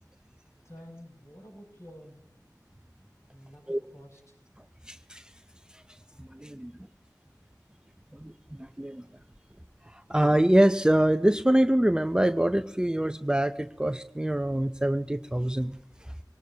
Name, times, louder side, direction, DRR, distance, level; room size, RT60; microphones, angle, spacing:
voice 1, 0.6-2.3 3.3-4.4, equal, 40° left, 0 dB, 7.3 m, -49 dB
voice 2, 4.9-5.3 5.7-5.8 6.2-6.7 8.1-9.0 9.9-16.1, right 1 dB, 10° right, 8 dB, 0.6 m, -25 dB
24.5 x 19.0 x 2.8 m, 0.71 s
wide cardioid pair, 45°, 7 cm